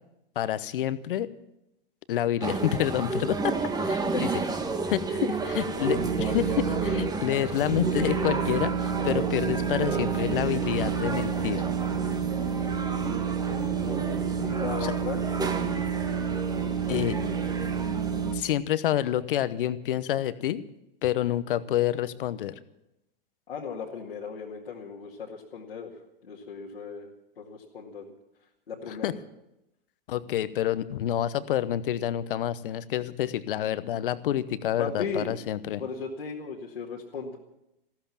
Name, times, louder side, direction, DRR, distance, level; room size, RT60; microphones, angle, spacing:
voice 1, 0.3-1.3 2.1-3.6 3.8-4.3 4.8-11.6 14.8-14.9 16.9-17.2 18.3-20.6 21.0-22.5 28.9-29.1 30.1-35.8, left 11 dB, 65° left, 15 dB, 1.1 m, -28 dB
sound 1, 2.4-18.3, right 3 dB, 15° right, 1.3 m, -32 dB
voice 2, 4.1-4.5 14.4-15.2 23.5-25.9 26.2-28.1 28.7-29.1 34.8-35.3 35.8-37.4, left 5 dB, 85° left, -4 dB, 2.3 m, -36 dB
sound 2, 5.9-7.1 7.6-18.4, right 7 dB, 80° right, 1.7 m, -30 dB
14.5 x 13.5 x 7.3 m, 0.88 s
hypercardioid pair, 115°, 29 cm